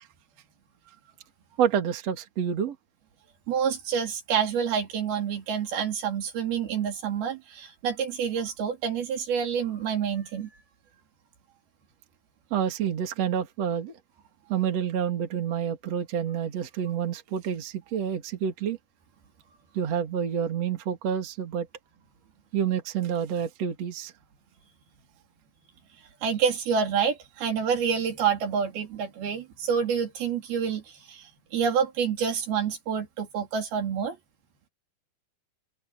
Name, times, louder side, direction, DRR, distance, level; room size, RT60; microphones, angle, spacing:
voice 1, 1.6-2.8 12.5-13.9 14.5-18.8 19.7-21.7 22.5-24.1, right 8 dB, 45° right, 3.3 m, -28 dB
voice 2, 3.5-10.5 26.2-34.2, right 7 dB, 70° right, 4.8 m, -28 dB
open air
omnidirectional pair, 4.6 m